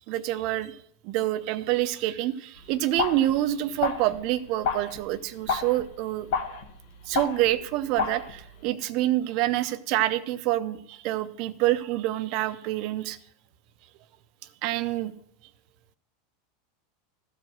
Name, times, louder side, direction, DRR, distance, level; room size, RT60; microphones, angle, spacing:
voice 1, 0.1-0.8 1.0-6.3 7.1-13.2 14.6-15.1, right 14 dB, 55° right, 14 dB, 0.6 m, -27 dB
sound 1, 2.6-8.7, left 5 dB, 70° left, 1.4 m, -32 dB
14.0 x 4.9 x 6.1 m, 0.67 s
hypercardioid pair, 100°, 0 cm